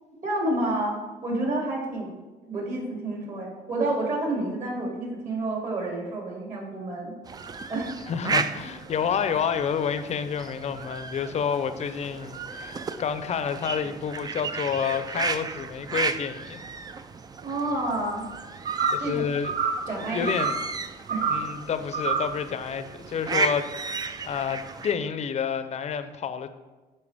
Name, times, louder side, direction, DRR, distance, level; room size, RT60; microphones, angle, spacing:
voice 1, 0.2-2.1 2.5-7.1 7.7-7.9 17.4-18.3 19.0-19.2 19.9-20.2 21.1-21.2, right 2 dB, 50° right, -2 dB, 2.7 m, -29 dB
sound 1, 7.2-24.9, right 4 dB, 25° right, 0.4 m, -34 dB
voice 2, 8.1-16.6 18.9-19.5 20.1-20.6 21.3-26.5, left 7 dB, 40° left, 11 dB, 0.6 m, -29 dB
sound 2, 18.7-19.1 19.4-19.9 20.3-20.7 21.1-21.5 21.9-22.4, right 5 dB, 70° right, 0.9 m, -27 dB
11.0 x 4.6 x 3.5 m, 1.2 s
cardioid pair, 110°, 17 cm